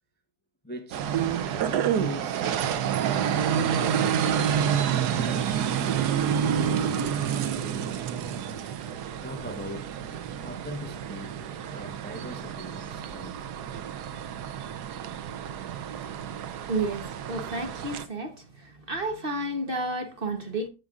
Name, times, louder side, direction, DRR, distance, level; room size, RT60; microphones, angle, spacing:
voice 1, 0.6-1.1 1.9-2.4 3.5-4.3 4.6-5.6 6.0-7.9 9.2-10.1 10.4-11.4 11.7-13.8, left 1 dB, 10° left, 0.7 m, -41 dB
sound 1, 0.9-18.1, right 8 dB, 90° right, 1.3 m, -29 dB
voice 2, 16.7-20.7, right 2 dB, 40° right, 1.1 m, -31 dB
14.5 x 5.2 x 2.4 m
omnidirectional pair, 1.7 m